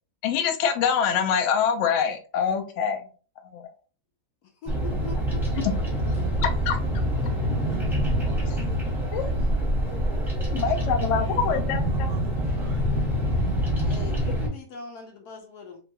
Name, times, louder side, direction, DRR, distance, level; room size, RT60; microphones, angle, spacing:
voice 1, 0.2-3.0 3.5-3.7 5.6-5.7 6.4-6.8 8.5-8.6 9.1-9.3 10.5-12.1, left 7 dB, 90° left, 6 dB, 0.6 m, -25 dB
voice 2, 4.4-5.6 9.0-9.1 13.8-15.8, left 3 dB, 70° left, 3 dB, 1.0 m, -41 dB
Bird vocalization bird call bird song, 4.7-14.5, equal, ahead, 0.6 m, -26 dB
voice 3, 10.5-13.4, right 6 dB, 85° right, 6 dB, 1.2 m, -50 dB
2.9 x 2.2 x 2.7 m, 0.39 s
omnidirectional pair, 1.9 m